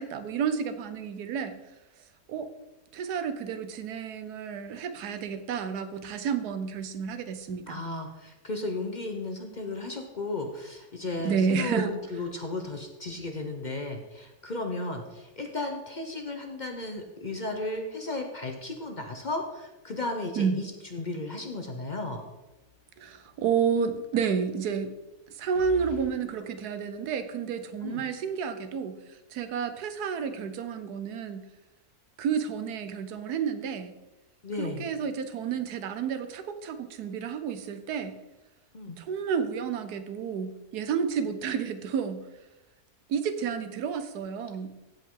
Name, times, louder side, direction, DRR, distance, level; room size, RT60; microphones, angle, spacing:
voice 1, 0.0-1.6 2.3-2.5 2.9-7.8 11.2-11.9 20.4-20.6 23.0-24.9 25.3-31.5 32.2-33.9 34.6-38.1 39.0-42.2 43.1-44.7, right 6 dB, 90° right, 10 dB, 1.3 m, -30 dB
voice 2, 7.7-22.2 27.8-28.0 34.4-34.8 38.7-39.0, left 2 dB, 40° left, 4 dB, 0.8 m, -34 dB
sound 1, 22.4-22.9 23.2-23.3 25.5-26.1, left 4 dB, 55° right, 2.4 m, -44 dB
15.5 x 5.5 x 3.8 m, 1.0 s
omnidirectional pair, 1.6 m